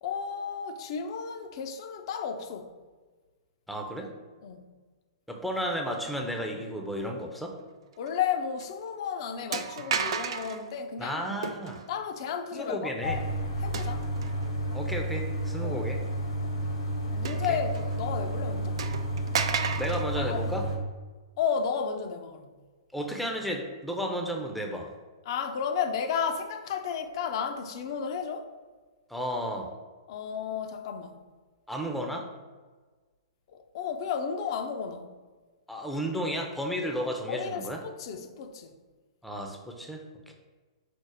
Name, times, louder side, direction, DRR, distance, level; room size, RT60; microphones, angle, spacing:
voice 1, 0.0-2.7 4.4-4.7 8.0-11.3 11.9-14.1 15.6-15.9 16.4-16.6 17.1-18.8 20.2-20.4 21.4-22.5 25.3-28.5 30.1-31.2 33.5-35.1 37.3-38.7, left 7 dB, 55° left, 0.5 m, -33 dB
voice 2, 3.7-4.1 5.3-7.6 11.0-11.8 12.5-13.2 14.7-16.1 17.5-17.6 19.8-20.7 22.9-24.9 29.1-29.7 31.7-32.3 35.7-37.8 39.2-40.3, equal, ahead, 0.5 m, -33 dB
sound 1, 8.1-8.3 8.6-8.7 9.5-10.6 11.4-11.9 13.7-14.5 15.1-15.2 17.2-18.0 18.3-18.4 18.8-20.1, right 6 dB, 65° right, 0.4 m, -33 dB
sound 2, 13.0-20.8, right 1 dB, 75° left, 1.0 m, -31 dB
5.0 x 2.0 x 4.7 m
hypercardioid pair, 120°, 3 cm